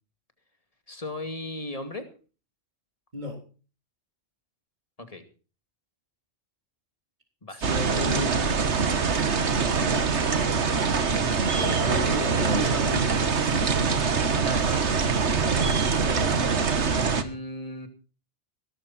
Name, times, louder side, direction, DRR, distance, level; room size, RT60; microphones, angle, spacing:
voice 1, 0.9-2.1 5.0-5.2 7.4-7.8 11.5-12.7 14.4-14.9 17.1-17.9, left 2 dB, 30° left, 7 dB, 2.6 m, -37 dB
voice 2, 7.5-8.6 9.4-10.0 11.6-14.0 15.4-16.4, left 1 dB, 40° right, 3 dB, 4.1 m, -35 dB
sound 1, 7.6-17.2, right 5 dB, 75° right, 1.7 m, -24 dB
18.0 x 13.5 x 4.3 m, 0.36 s
omnidirectional pair, 1.2 m